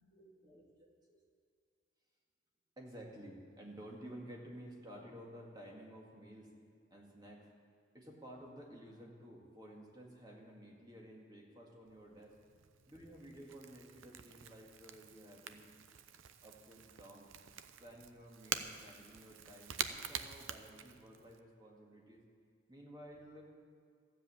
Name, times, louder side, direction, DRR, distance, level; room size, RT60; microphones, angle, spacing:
voice 1, 0.1-1.2 2.8-6.5 6.9-7.4 7.9-12.3 12.9-15.7 16.4-17.3 17.8-22.2 22.7-23.4, right 1 dB, 20° right, -1 dB, 2.0 m, -53 dB
Crackle / Crack, 11.9-21.4, right 8 dB, 90° right, 0.7 m, -46 dB
14.0 x 7.6 x 8.5 m, 2.3 s
head